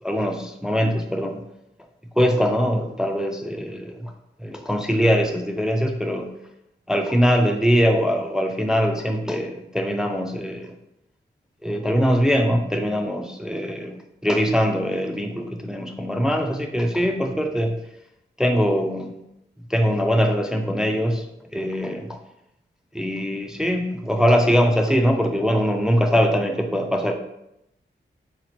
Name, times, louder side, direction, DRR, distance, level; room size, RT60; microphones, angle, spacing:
voice 1, 0.0-1.4 2.2-4.1 4.4-6.3 6.9-10.7 11.6-17.8 18.4-19.1 19.7-21.3 21.5-22.2 22.9-27.1, equal, 5° right, 4 dB, 0.3 m, -22 dB
2.9 x 2.5 x 4.2 m, 0.83 s
wide cardioid pair, 80°, 20 cm